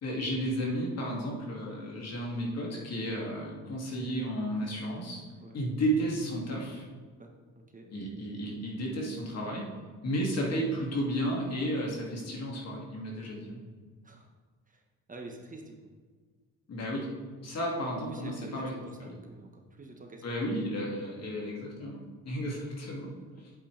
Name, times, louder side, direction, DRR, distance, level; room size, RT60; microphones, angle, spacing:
voice 1, 0.0-5.2 5.5-6.9 7.9-9.6 10.0-13.6 16.7-17.1 17.4-18.7 19.0-19.2 20.2-23.1, equal, 55° left, -2 dB, 2.6 m, -33 dB
voice 2, 7.2-7.9 14.0-14.3 14.7-14.8 15.1-15.9 18.1-20.2 23.3-23.4, right 2 dB, 25° right, 1 dB, 1.3 m, -48 dB
8.5 x 8.3 x 3.4 m, 1.5 s
cardioid pair, 90°, 30 cm